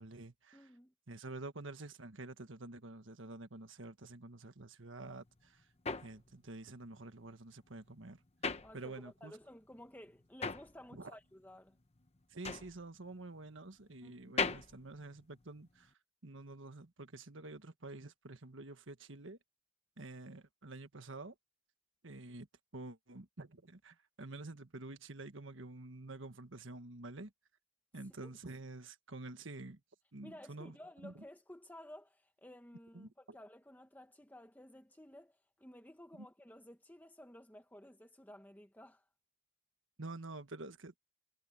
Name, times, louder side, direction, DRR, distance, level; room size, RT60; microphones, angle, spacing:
voice 1, 0.0-0.7 1.1-5.6 6.0-8.2 8.7-9.3 10.9-11.1 12.3-15.9 16.2-19.4 20.0-21.3 22.0-22.5 22.7-27.3 27.9-29.8 30.1-30.7 31.0-31.1 32.9-33.4 36.2-36.3 40.0-41.0, right 2 dB, 70° right, 1.5 m, -48 dB
voice 2, 0.5-0.9 8.6-11.8 14.0-14.3 28.2-28.3 30.2-39.0, left 1 dB, 10° left, 1.2 m, -55 dB
sound 1, 5.1-9.4 9.7-15.9, left 4 dB, 30° left, 1.1 m, -41 dB
head